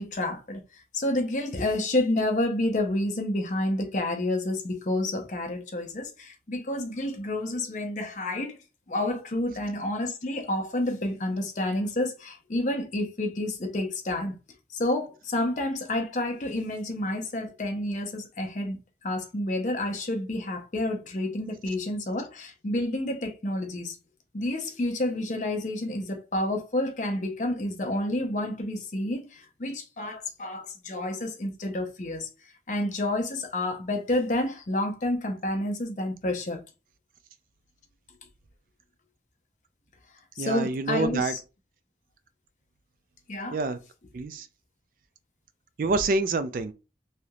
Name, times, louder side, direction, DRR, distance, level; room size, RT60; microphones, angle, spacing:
voice 1, 0.0-8.6 8.9-14.4 14.7-18.8 19.0-24.0 24.3-32.3 32.7-36.6 40.4-41.4 43.3-43.6, left 1 dB, 45° left, 0.7 m, -29 dB
voice 2, 40.4-41.3 43.5-43.8 44.1-44.5 45.8-46.7, right 3 dB, 50° right, 0.3 m, -27 dB
3.3 x 2.7 x 2.3 m
head